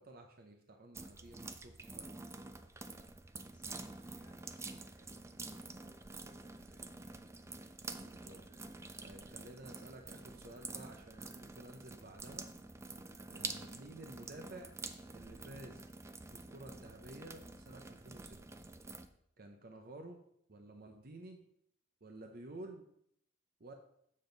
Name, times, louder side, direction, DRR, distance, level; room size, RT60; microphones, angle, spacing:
voice 1, 0.0-2.1 7.6-12.5 13.3-14.8 15.1-15.9 16.3-18.4 19.4-20.2 20.5-21.4 22.0-22.9 23.6-23.7, right 2 dB, 45° right, 4 dB, 0.7 m, -52 dB
sound 1, 0.9-19.1, right 3 dB, 15° right, 0.3 m, -48 dB
voice 2, 3.5-7.2, left 1 dB, 10° left, -7 dB, 2.8 m, -71 dB
7.5 x 7.0 x 3.9 m, 0.71 s
head